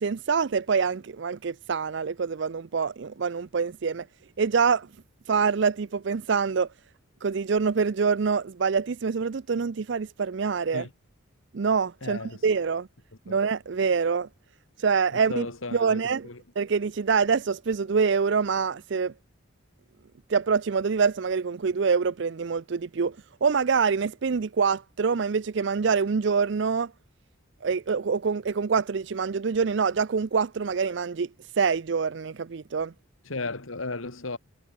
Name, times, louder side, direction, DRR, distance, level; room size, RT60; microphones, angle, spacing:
voice 1, 0.0-4.1 4.4-4.9 5.3-6.7 7.2-10.9 11.5-12.9 13.3-14.3 14.8-15.5 15.7-16.3 16.6-19.1 20.3-23.2 23.4-26.9 27.6-31.3 31.6-32.9, right 5 dB, 60° right, 0.5 m, -25 dB
voice 2, 12.0-12.4 13.3-13.4 15.1-16.4 33.3-34.4, left 3 dB, 75° left, 2.1 m, -35 dB
head